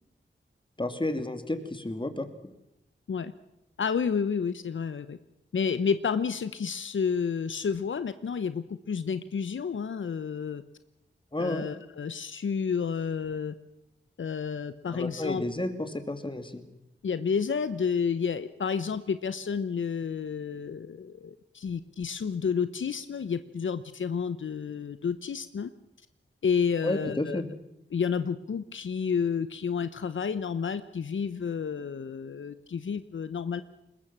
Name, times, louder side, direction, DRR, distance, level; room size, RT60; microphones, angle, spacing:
voice 1, 0.8-2.3 11.3-11.7 14.9-16.6 26.8-27.5, left 1 dB, 25° left, 9 dB, 2.6 m, -31 dB
voice 2, 3.8-5.2 5.5-10.6 11.4-13.5 14.2-15.4 17.0-25.7 26.4-27.4 27.9-33.6, left 6 dB, 80° left, 13 dB, 0.8 m, -30 dB
22.0 x 20.0 x 7.3 m, 0.88 s
cardioid pair, 55°, 20 cm